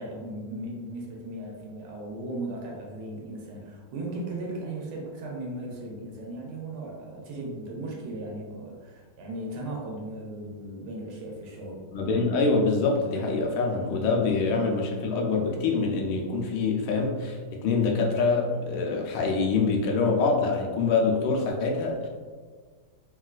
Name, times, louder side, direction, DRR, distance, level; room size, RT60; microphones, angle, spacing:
voice 1, 0.0-11.8, right 1 dB, 90° right, -1 dB, 1.5 m, -37 dB
voice 2, 11.9-22.1, left 4 dB, 90° left, 0 dB, 1.5 m, -25 dB
3.9 x 2.4 x 2.2 m, 1.6 s
omnidirectional pair, 2.3 m